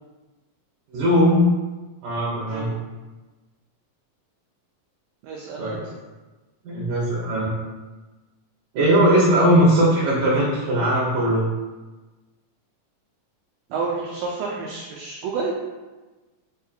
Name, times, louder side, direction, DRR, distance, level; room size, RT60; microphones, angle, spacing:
voice 1, 0.9-1.5 2.0-2.7 5.6-5.9 6.6-7.5 8.7-11.5, equal, 70° right, -7 dB, 2.0 m, -19 dB
voice 2, 5.2-5.8 13.7-15.5, right 4 dB, 90° right, -2 dB, 1.8 m, -29 dB
6.7 x 2.8 x 2.4 m, 1.2 s
omnidirectional pair, 4.2 m